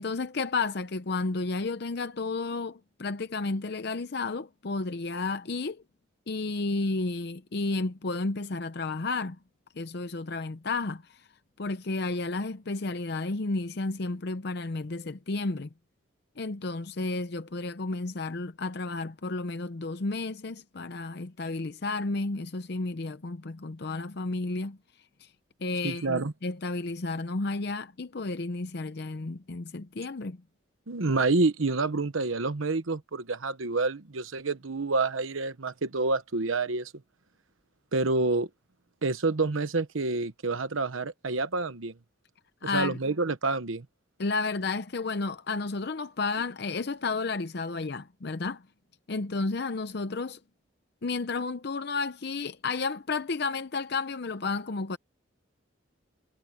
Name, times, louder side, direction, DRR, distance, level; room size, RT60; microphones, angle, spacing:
voice 1, 0.0-5.8 6.3-9.4 9.8-11.2 11.6-15.7 16.4-24.8 25.2-25.3 25.6-30.4 42.6-43.0 44.2-48.6 49.1-50.4 51.0-55.0, left 3 dB, 55° left, 0.7 m, -32 dB
voice 2, 25.8-26.3 30.9-36.9 37.9-38.5 39.0-41.9 42.7-43.8, right 3 dB, 85° right, 1.0 m, -28 dB
head